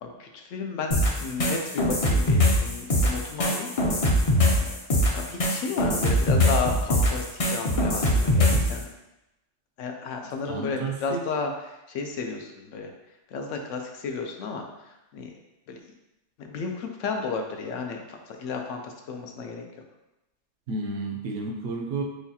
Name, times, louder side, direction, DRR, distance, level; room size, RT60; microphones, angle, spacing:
voice 1, 0.0-4.1 4.4-4.8 5.1-7.3 7.5-8.9 9.8-12.9 13.3-14.6 15.1-15.3 15.7-15.8 16.4-19.6, left 4 dB, 80° left, 3 dB, 0.9 m, -33 dB
sound 1, 0.9-8.7, left 1 dB, 40° left, 0.5 m, -22 dB
voice 2, 10.5-11.2 20.7-22.0, right 3 dB, 85° right, 1 dB, 1.0 m, -31 dB
6.3 x 2.3 x 2.8 m, 0.95 s
omnidirectional pair, 1.3 m